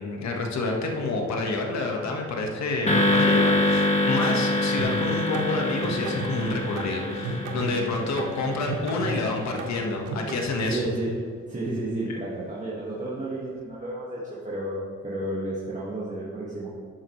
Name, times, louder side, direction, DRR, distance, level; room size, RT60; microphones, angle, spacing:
voice 1, 0.0-10.8 12.1-12.2, left 3 dB, 65° left, 1 dB, 1.5 m, -28 dB
sound 1, 2.9-9.2, left 1 dB, 20° left, 1.7 m, -25 dB
sound 2, 4.8-10.4, right 3 dB, 85° right, 1.3 m, -34 dB
voice 2, 10.7-11.1 11.5-16.7, right 1 dB, 25° right, -6 dB, 1.8 m, -32 dB
12.5 x 7.7 x 3.2 m, 2.1 s
cardioid pair, 90°, 30 cm